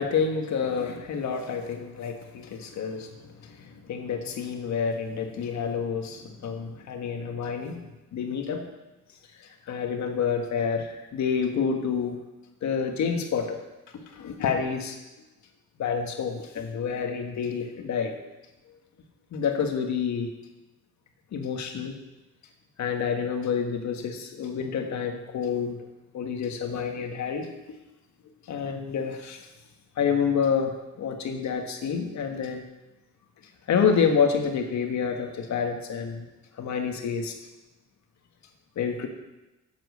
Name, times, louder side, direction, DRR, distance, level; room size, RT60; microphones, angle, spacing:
voice 1, 0.0-7.8 8.1-8.6 9.4-12.2 12.6-13.6 14.1-15.0 15.8-18.2 19.3-20.3 21.3-21.9 22.8-25.8 26.1-27.5 28.5-29.5 30.0-32.7 33.7-36.3 36.6-37.4 38.7-39.1, left 6 dB, 65° left, 4 dB, 1.6 m, -28 dB
7.9 x 7.6 x 6.7 m, 1.0 s
cardioid pair, 90°, 30 cm